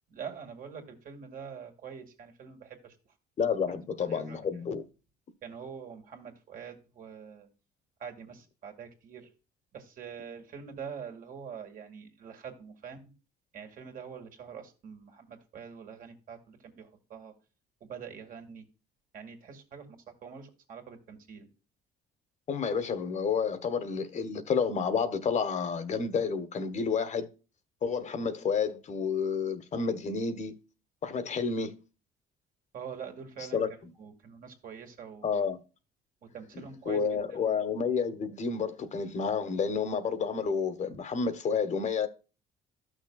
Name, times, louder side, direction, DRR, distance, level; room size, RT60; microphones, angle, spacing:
voice 1, 0.1-3.0 4.0-4.4 5.4-7.5 8.0-9.3 9.7-13.0 13.5-17.3 17.9-18.6 19.1-21.5 32.7-33.6 34.0-35.4 36.2-37.6, right 7 dB, 55° right, 2.1 m, -45 dB
voice 2, 3.4-4.8 22.5-27.3 27.8-30.5 31.0-31.7 33.5-33.7 35.2-35.6 36.8-42.1, left 6 dB, 45° left, 1.2 m, -30 dB
12.5 x 6.3 x 2.3 m
cardioid pair, 110°, 17 cm